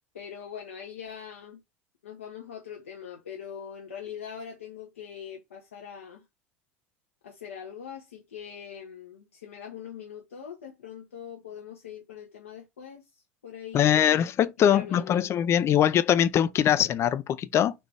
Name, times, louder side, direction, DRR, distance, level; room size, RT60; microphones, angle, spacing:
voice 1, 0.1-1.6 2.0-6.2 7.2-14.2 14.7-15.1, left 8 dB, 80° left, 0.9 m, -42 dB
voice 2, 13.7-17.7, left 10 dB, 40° left, 0.6 m, -22 dB
4.2 x 3.4 x 3.3 m
hypercardioid pair, 75°, 7 cm